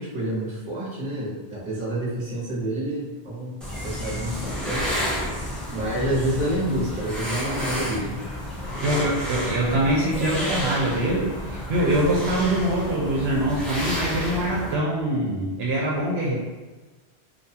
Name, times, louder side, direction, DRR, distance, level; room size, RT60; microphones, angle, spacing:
voice 1, 0.0-3.6 3.8-4.9 5.7-8.1, right 1 dB, 30° right, -7 dB, 0.8 m, -28 dB
sound 1, 3.6-14.7, equal, ahead, 0.3 m, -31 dB
voice 2, 8.8-16.4, right 1 dB, 70° right, -4 dB, 0.8 m, -24 dB
2.6 x 2.2 x 2.7 m, 1.3 s
omnidirectional pair, 1.1 m